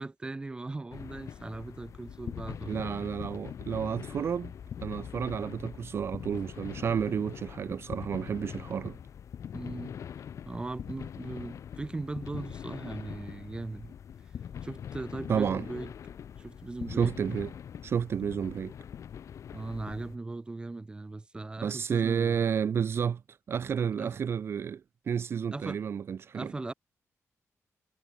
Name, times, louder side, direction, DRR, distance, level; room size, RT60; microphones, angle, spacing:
voice 1, 0.0-3.1 9.5-10.0 10.5-13.9 14.6-15.9 16.4-17.2 19.5-22.4 24.0-24.2 25.5-25.8 26.3-26.7, right 2 dB, 15° right, 0.6 m, -39 dB
sound 1, 0.9-20.2, left 8 dB, 65° left, 0.8 m, -42 dB
voice 2, 2.7-4.5 4.8-9.0 15.3-15.7 16.9-17.5 17.8-18.7 21.6-23.2 23.5-24.8 25.1-26.5, right 7 dB, 50° right, 0.4 m, -31 dB
wide cardioid pair, 165°, 6 cm